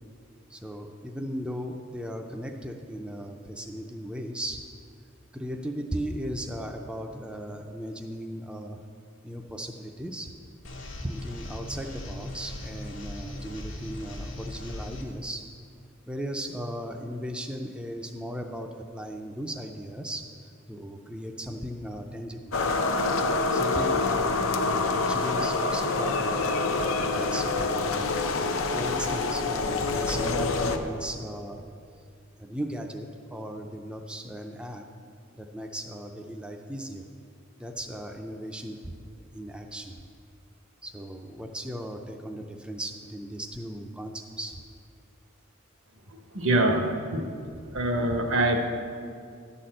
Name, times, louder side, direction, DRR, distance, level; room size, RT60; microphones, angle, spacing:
voice 1, 0.5-4.6 5.3-8.8 9.2-10.3 11.0-15.4 16.1-20.3 20.7-22.5 23.5-26.4 26.8-28.1 28.7-31.6 32.4-34.9 35.3-37.0 37.6-40.0 40.8-44.6, equal, 5° right, 3 dB, 0.4 m, -37 dB
sound 1, 10.6-15.0, left 1 dB, 65° left, 1.3 m, -39 dB
sound 2, 22.5-30.8, left 3 dB, 85° left, 0.6 m, -26 dB
voice 2, 46.3-46.9 47.1-47.2 47.7-48.6, right 1 dB, 70° right, 4 dB, 1.0 m, -24 dB
11.0 x 4.2 x 7.6 m, 2.3 s
head